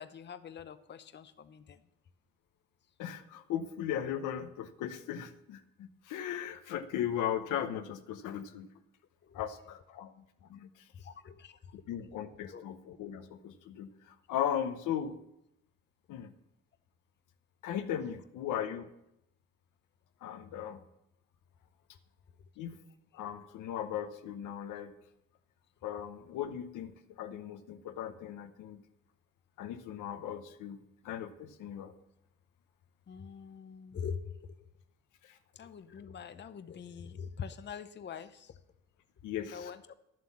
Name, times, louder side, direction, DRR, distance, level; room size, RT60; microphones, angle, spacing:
voice 1, 0.0-1.8 9.2-9.5 11.0-11.8 12.4-12.6 33.1-34.7 35.6-38.6 39.5-39.8, left 7 dB, 35° left, 12 dB, 0.7 m, -44 dB
voice 2, 3.0-8.7 9.3-10.1 10.5-10.7 11.9-15.2 16.1-16.3 17.6-18.9 20.2-20.8 22.6-22.8 23.1-24.9 25.8-28.8 29.6-30.8 31.0-31.9 35.2-35.4 39.2-39.7, left 9 dB, 85° left, 9 dB, 1.0 m, -37 dB
11.0 x 7.7 x 7.2 m, 0.83 s
cardioid pair, 90°, 30 cm